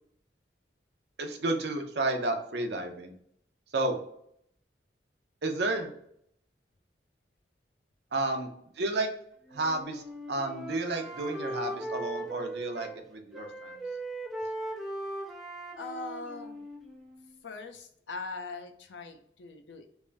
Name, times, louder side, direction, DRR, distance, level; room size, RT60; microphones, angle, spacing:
voice 1, 1.2-3.2 3.7-4.0 5.4-5.9 8.1-9.1 9.5-10.0 10.3-13.8, right 2 dB, 70° right, 4 dB, 0.6 m, -31 dB
Wind instrument woodwind instrument, 9.5-13.0 13.3-17.3, right 2 dB, ahead, 0.4 m, -39 dB
voice 2, 15.8-16.6 17.4-19.9, left 3 dB, 85° left, 6 dB, 0.5 m, -41 dB
3.4 x 2.6 x 3.3 m, 0.68 s
head